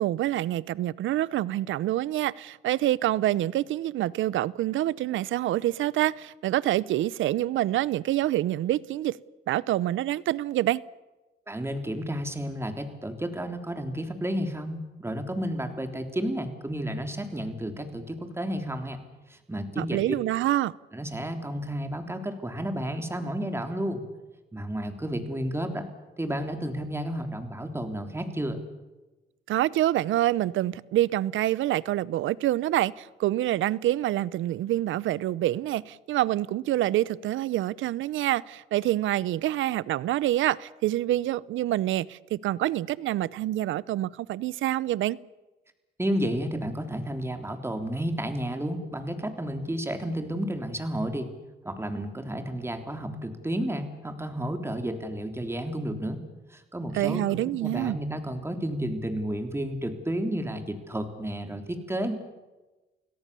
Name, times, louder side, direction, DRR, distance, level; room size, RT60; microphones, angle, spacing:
voice 1, 0.0-9.2 9.5-10.8 19.8-20.7 29.5-45.2 56.9-58.0, right 14 dB, 80° right, 0.7 m, -26 dB
voice 2, 11.5-19.0 19.3-20.0 20.9-24.0 24.5-25.9 26.2-28.6 46.0-51.3 51.6-56.2 56.5-62.1, right 1 dB, 10° right, 3.5 m, -31 dB
29.5 x 17.5 x 7.0 m
cardioid pair, 90°, 20 cm